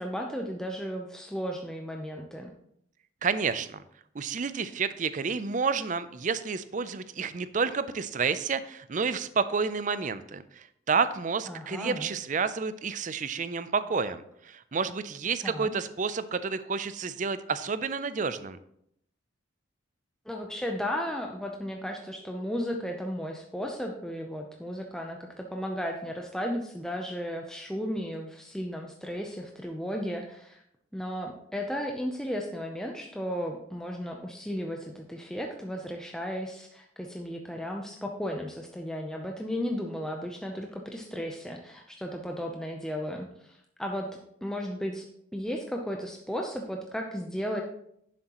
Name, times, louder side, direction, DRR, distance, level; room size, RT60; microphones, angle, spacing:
voice 1, 0.0-2.5 11.5-12.1 15.4-15.8 20.3-30.6 30.9-44.1 44.4-45.1 45.3-47.6, equal, 5° left, 1 dB, 0.6 m, -34 dB
voice 2, 3.2-3.8 4.1-18.6, right 5 dB, 40° right, 14 dB, 0.5 m, -30 dB
10.5 x 7.4 x 3.0 m, 0.72 s
head